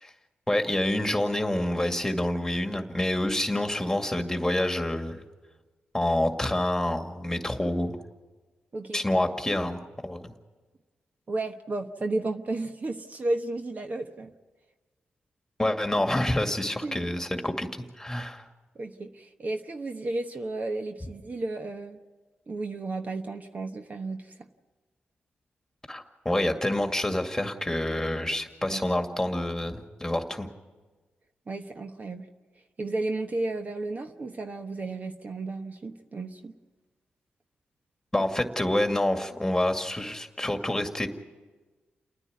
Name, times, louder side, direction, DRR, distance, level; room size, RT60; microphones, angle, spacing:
voice 1, 0.5-5.2 5.9-8.0 8.9-10.3 15.6-17.7 18.0-18.4 25.9-30.5 38.1-41.1, left 1 dB, 10° left, 5 dB, 2.1 m, -27 dB
voice 2, 11.3-14.3 16.8-17.1 18.7-22.0 22.5-24.3 28.7-28.8 31.5-32.2 32.8-36.5, right 2 dB, 45° right, 6 dB, 1.2 m, -33 dB
29.0 x 9.9 x 9.5 m, 1.3 s
cardioid pair, 60°, 4 cm